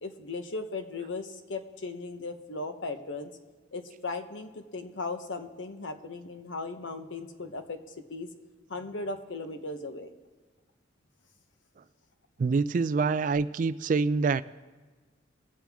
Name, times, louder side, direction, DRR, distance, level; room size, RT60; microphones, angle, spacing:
voice 1, 0.0-3.3 3.7-8.3 8.7-10.1, left 3 dB, 80° left, 7 dB, 1.0 m, -37 dB
voice 2, 12.4-14.4, right 4 dB, 45° right, 14 dB, 0.3 m, -26 dB
21.0 x 7.5 x 3.5 m, 1.4 s
head